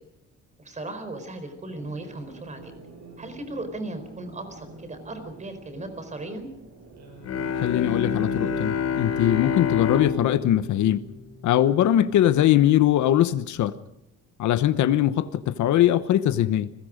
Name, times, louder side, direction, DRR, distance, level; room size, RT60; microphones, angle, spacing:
voice 1, 0.6-2.7 3.2-6.5, right 2 dB, 25° right, 4.5 m, -37 dB
sound 1, 1.7-13.0, right 3 dB, 65° right, 7.4 m, -48 dB
Bowed string instrument, 7.2-12.1, left 6 dB, 55° left, 4.1 m, -28 dB
voice 2, 7.6-11.1 11.4-13.7 14.4-16.7, left 12 dB, 70° left, 1.1 m, -21 dB
29.5 x 21.5 x 5.2 m
cardioid pair, 150°, 30 cm